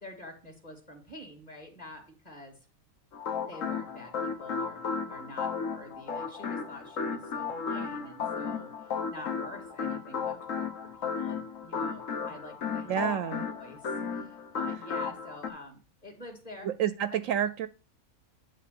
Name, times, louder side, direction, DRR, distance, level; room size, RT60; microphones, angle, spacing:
voice 1, 0.0-2.6 3.4-13.0 13.5-16.7 17.1-17.2, left 1 dB, 25° left, 3 dB, 2.4 m, -47 dB
sound 1, 3.1-15.5, left 5 dB, 60° left, 1.4 m, -34 dB
voice 2, 12.9-13.5 16.6-17.7, right 10 dB, 70° right, 14 dB, 0.9 m, -29 dB
10.0 x 3.6 x 6.7 m, 0.34 s
omnidirectional pair, 1.5 m